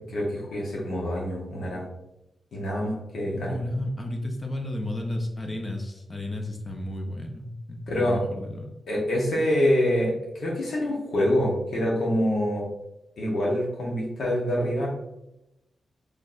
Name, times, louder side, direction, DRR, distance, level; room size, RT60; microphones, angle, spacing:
voice 1, 0.1-1.9 2.5-3.6 7.9-8.2 8.9-12.7 13.2-14.9, equal, 80° left, -3 dB, 1.2 m, -26 dB
voice 2, 3.3-8.7, left 1 dB, 25° left, 2 dB, 0.6 m, -32 dB
4.0 x 3.1 x 2.5 m, 0.91 s
wide cardioid pair, 120°, 0 cm